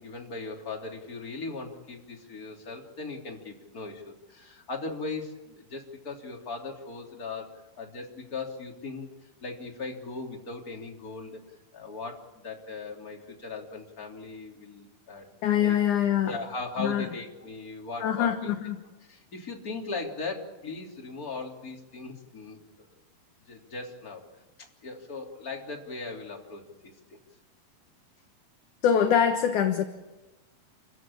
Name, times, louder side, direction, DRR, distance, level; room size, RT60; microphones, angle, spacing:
voice 1, 0.0-11.4 11.7-15.3 15.6-15.8 16.2-18.5 19.0-22.9 23.5-24.3 24.6-26.7, left 3 dB, 25° left, 1 dB, 3.4 m, -38 dB
voice 2, 15.4-16.3 16.8-17.1 18.0-18.8 28.8-29.8, left 9 dB, 65° left, 6 dB, 2.3 m, -24 dB
28.5 x 16.0 x 8.7 m, 1.1 s
omnidirectional pair, 4.6 m